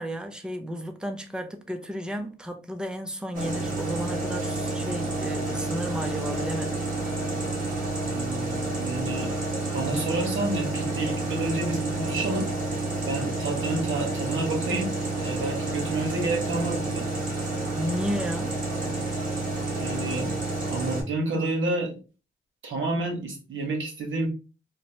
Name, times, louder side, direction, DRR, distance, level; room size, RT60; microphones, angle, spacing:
voice 1, 0.0-6.9 17.8-18.5, equal, 5° right, 0.4 m, -33 dB
sound 1, 3.3-21.0, right 2 dB, 40° right, 1.6 m, -29 dB
voice 2, 8.0-9.3 9.7-12.5 13.1-17.1 19.8-20.3 20.7-22.0 22.6-24.3, right 2 dB, 70° right, 1.2 m, -29 dB
2.9 x 2.1 x 2.8 m
cardioid pair, 100°, 21 cm